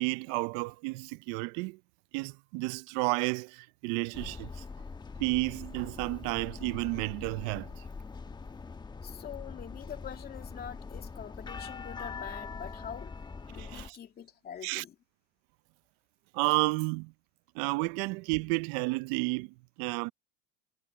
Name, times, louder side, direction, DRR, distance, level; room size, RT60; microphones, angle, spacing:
voice 1, 0.0-1.8 2.1-4.6 5.2-7.8 13.6-14.0 14.6-14.8 16.3-17.1 17.5-20.1, right 26 dB, 60° right, 0.7 m, -31 dB
sound 1, 4.1-13.9, left 4 dB, 15° left, 1.2 m, -43 dB
voice 2, 9.0-13.2 13.5-15.0, left 9 dB, 35° left, 2.4 m, -44 dB
supercardioid pair, 105°, 29 cm